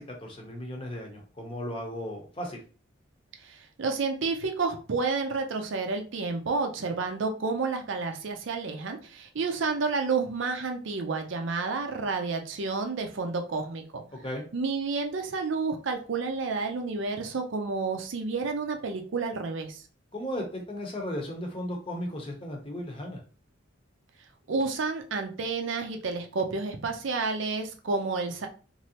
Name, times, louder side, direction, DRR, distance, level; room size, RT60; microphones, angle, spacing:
voice 1, 0.0-2.6 14.2-14.4 20.1-23.2, equal, 25° left, 1 dB, 0.7 m, -35 dB
voice 2, 3.4-14.0 14.5-19.8 24.5-28.5, right 4 dB, 70° right, 5 dB, 0.5 m, -30 dB
3.1 x 2.6 x 2.8 m, 0.38 s
head